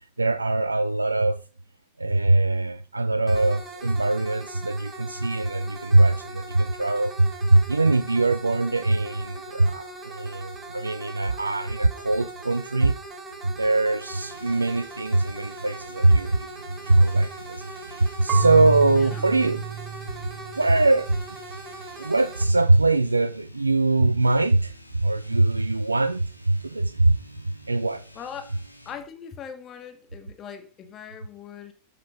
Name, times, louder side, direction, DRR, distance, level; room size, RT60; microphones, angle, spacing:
voice 1, 0.2-1.4 2.0-13.0 13.4-16.5 16.8-19.6 20.6-21.2 22.0-27.2 27.7-28.0, right 2 dB, 80° right, 0.5 m, -22 dB
sound 1, 3.3-22.4, right 2 dB, 15° right, 4.0 m, -41 dB
sound 2, 13.9-29.1, equal, 90° left, 1.8 m, -49 dB
Marimba xylophone / Wood, 18.3-21.1, right 10 dB, 30° right, 0.9 m, -31 dB
voice 2, 28.2-28.6 28.9-31.7, left 7 dB, 30° left, 1.8 m, -40 dB
12.5 x 6.8 x 5.1 m
figure-of-eight pair, 90°, 0 cm